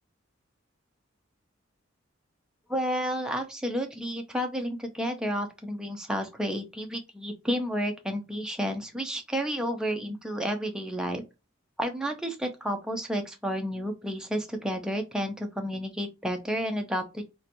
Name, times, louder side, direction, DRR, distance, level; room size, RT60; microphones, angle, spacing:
voice 1, 2.7-11.2 11.8-17.2, equal, 5° right, 0.4 m, -31 dB
2.8 x 2.2 x 2.5 m
head